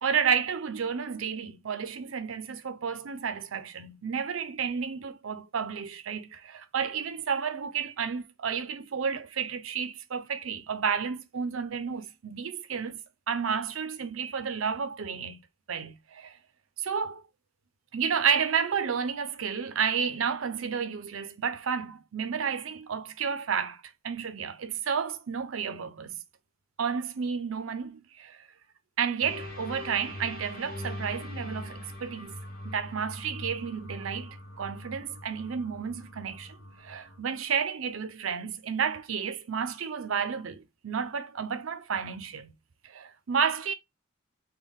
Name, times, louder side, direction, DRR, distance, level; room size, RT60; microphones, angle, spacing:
voice 1, 0.0-13.0 13.3-15.4 15.7-16.4 16.8-17.2 17.9-26.1 26.8-28.4 29.0-32.4 32.6-42.5 42.8-43.7, right 6 dB, 80° right, 0.5 m, -31 dB
sound 1, 29.2-37.2, left 1 dB, 45° left, 0.9 m, -42 dB
3.6 x 2.3 x 3.5 m
head